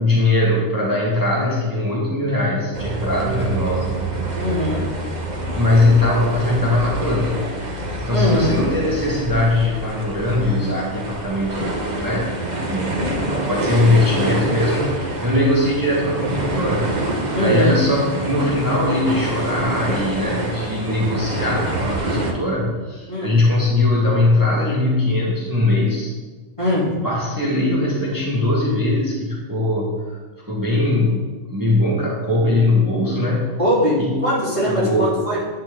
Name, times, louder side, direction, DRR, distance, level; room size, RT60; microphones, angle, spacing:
voice 1, 0.0-4.0 5.5-7.5 8.0-12.3 12.7-13.0 13.5-16.9 17.3-26.1 27.0-30.2 30.4-33.5 34.0-34.2 34.7-35.1, left 2 dB, 15° right, -5 dB, 1.7 m, -20 dB
sound 1, 2.7-22.3, right 1 dB, 40° right, 1.3 m, -26 dB
voice 2, 4.4-4.9 8.1-8.6 17.3-17.8 23.1-23.4 26.6-26.9 33.6-35.4, equal, 25° left, -7 dB, 3.6 m, -21 dB
11.0 x 9.6 x 3.8 m, 1.4 s
omnidirectional pair, 1.2 m